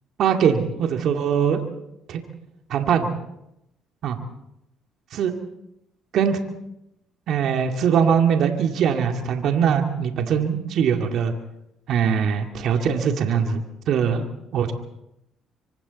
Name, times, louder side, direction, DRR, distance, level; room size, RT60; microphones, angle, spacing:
voice 1, 0.2-1.6 2.1-2.2 2.7-3.1 4.0-4.1 5.1-5.3 6.1-6.4 7.3-11.3 11.9-14.2 14.5-14.7, right 7 dB, 65° right, 4 dB, 2.2 m, -21 dB
27.5 x 24.5 x 4.1 m, 0.85 s
hypercardioid pair, 65°, 0 cm